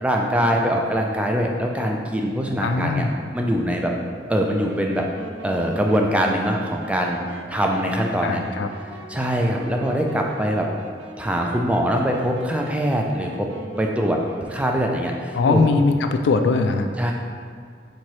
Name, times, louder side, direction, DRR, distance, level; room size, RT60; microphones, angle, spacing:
voice 1, 0.0-3.0 3.3-3.9 4.3-5.0 5.4-7.2 7.5-8.4 9.1-10.7 11.2-13.5 13.8-14.2 14.5-15.6 17.0-17.1, equal, 5° right, 0 dB, 0.3 m, -22 dB
voice 2, 2.6-3.2 8.2-8.7 15.3-16.9, left 3 dB, 80° left, 7 dB, 0.3 m, -20 dB
Wind instrument woodwind instrument, 4.4-15.3, right 2 dB, 80° right, 0.4 m, -42 dB
4.5 x 3.7 x 3.1 m, 2.1 s
head